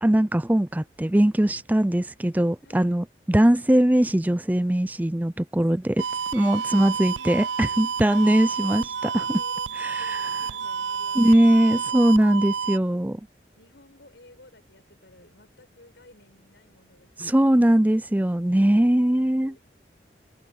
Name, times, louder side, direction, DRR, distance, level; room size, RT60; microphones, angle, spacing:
voice 1, 0.0-6.0 6.3-9.3 11.2-13.2 17.2-19.5, right 1 dB, 10° right, 0.4 m, -21 dB
voice 2, 2.6-3.0 7.3-8.0 9.3-12.1 13.6-17.9 18.2-19.6, left 2 dB, 90° left, 6.8 m, -54 dB
sound 1, 6.0-12.8, right 6 dB, 85° right, 0.4 m, -30 dB
head